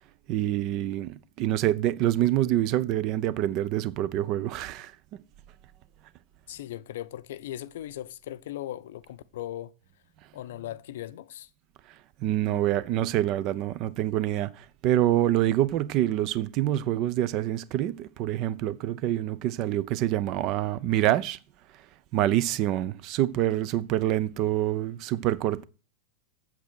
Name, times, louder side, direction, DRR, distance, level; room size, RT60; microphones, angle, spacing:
voice 1, 0.3-4.9 12.2-21.4 22.1-25.6, right 13 dB, 40° right, 0.6 m, -26 dB
voice 2, 6.5-9.7 10.3-11.5, left 13 dB, 55° left, 0.6 m, -38 dB
8.2 x 7.4 x 6.1 m
figure-of-eight pair, 90°, 0 cm